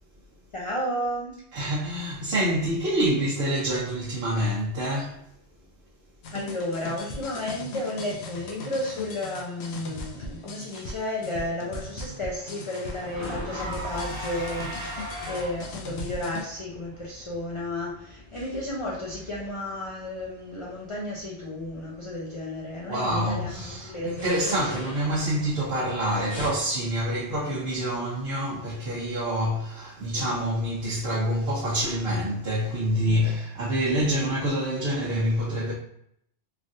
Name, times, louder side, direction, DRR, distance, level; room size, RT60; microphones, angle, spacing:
voice 1, 0.5-1.3 6.3-24.7 33.0-33.2, left 1 dB, 45° left, 0.4 m, -33 dB
voice 2, 1.5-5.2 22.9-35.7, equal, 60° right, 0.9 m, -27 dB
sound 1, 6.2-16.4, left 2 dB, 75° left, 0.8 m, -39 dB
Car / Engine, 10.8-15.8, equal, 80° right, 1.3 m, -39 dB
sound 2, 12.9-26.5, left 1 dB, 25° left, 0.8 m, -43 dB
3.2 x 2.4 x 2.6 m
omnidirectional pair, 1.2 m